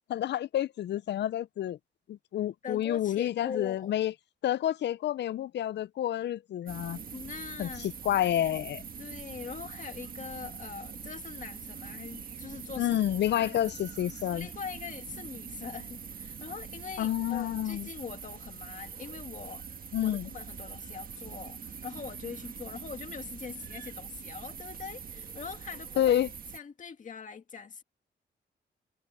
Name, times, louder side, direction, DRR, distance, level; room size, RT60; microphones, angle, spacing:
voice 1, 0.1-1.8 2.1-4.1 4.4-7.0 7.6-8.8 12.8-14.5 17.0-17.9 19.9-20.3 26.0-26.3, left 11 dB, 65° left, 0.4 m, -29 dB
voice 2, 2.6-3.9 7.1-7.9 9.0-13.0 13.3-13.5 14.3-19.6 20.0-26.1 26.5-27.8, left 6 dB, 40° left, 1.9 m, -42 dB
sound 1, 6.7-26.6, right 6 dB, 50° right, 1.5 m, -43 dB
wide cardioid pair, 140°, 19 cm